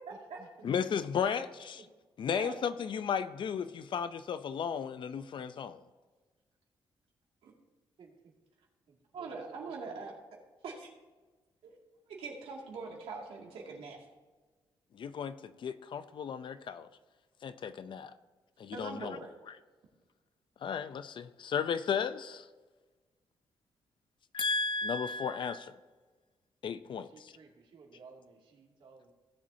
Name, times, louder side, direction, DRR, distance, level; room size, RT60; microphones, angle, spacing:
voice 1, 0.1-0.5 1.7-1.9 8.0-8.3 8.9-10.0 26.9-29.1, right 4 dB, 65° right, 0 dB, 2.5 m, -56 dB
voice 2, 0.6-1.8 2.2-5.8 14.9-16.9 17.4-18.1 18.6-19.2 20.6-22.5 24.3-25.7 26.6-27.1, left 6 dB, 60° left, 12 dB, 0.6 m, -34 dB
voice 3, 9.1-10.1 10.6-10.9 11.6-11.8 12.1-14.1 18.7-19.3, right 4 dB, 85° right, -1 dB, 2.3 m, -42 dB
17.0 x 7.5 x 2.8 m, 1.3 s
cardioid pair, 95°, 9 cm